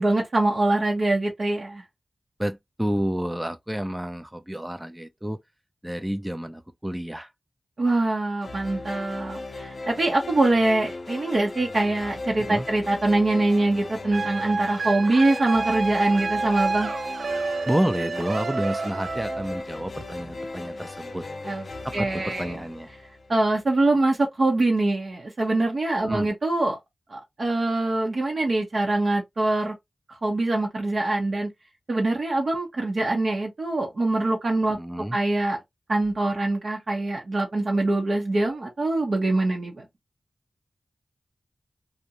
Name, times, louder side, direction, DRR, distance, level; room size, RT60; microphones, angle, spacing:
voice 1, 0.0-1.8 7.8-16.9 21.4-21.6 21.9-22.6 23.3-26.8 27.1-29.7 30.2-31.5 31.9-34.8 35.1-35.6 35.9-39.8, right 2 dB, 65° right, 0.8 m, -24 dB
voice 2, 2.4-5.4 5.8-7.3 12.5-12.7 17.7-21.2 21.8-22.9 26.1-26.3 34.8-35.2, right 1 dB, 10° right, 0.4 m, -29 dB
sound 1, 8.4-23.7, left 2 dB, 60° left, 0.4 m, -37 dB
sound 2, 14.1-19.6, right 3 dB, 90° right, 0.4 m, -29 dB
2.4 x 2.1 x 2.7 m
wide cardioid pair, 90°, 0 cm